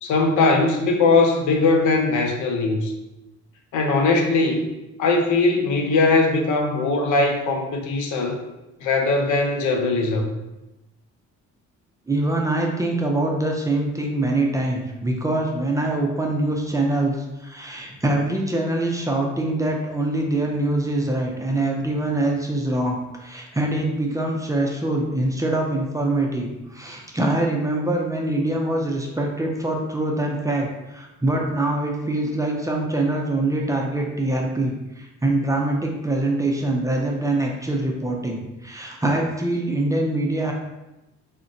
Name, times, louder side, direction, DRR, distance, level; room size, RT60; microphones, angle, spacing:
voice 1, 0.0-2.9 3.7-4.7 5.0-8.4 8.8-10.4, left 3 dB, 80° left, 3 dB, 0.6 m, -20 dB
voice 2, 12.1-40.5, right 2 dB, 10° right, 0 dB, 0.4 m, -24 dB
3.7 x 2.1 x 2.6 m, 0.98 s
cardioid pair, 90°, 30 cm